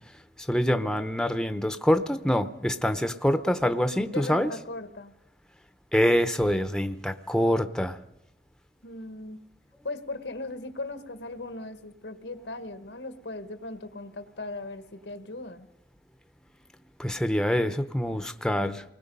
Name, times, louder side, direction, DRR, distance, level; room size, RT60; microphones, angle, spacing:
voice 1, 0.5-4.5 5.9-8.0 17.0-18.8, equal, 5° left, 10 dB, 0.7 m, -25 dB
voice 2, 4.1-5.1 8.8-9.5 9.8-15.7, left 2 dB, 90° left, 10 dB, 1.4 m, -38 dB
28.0 x 20.0 x 5.4 m, 0.88 s
head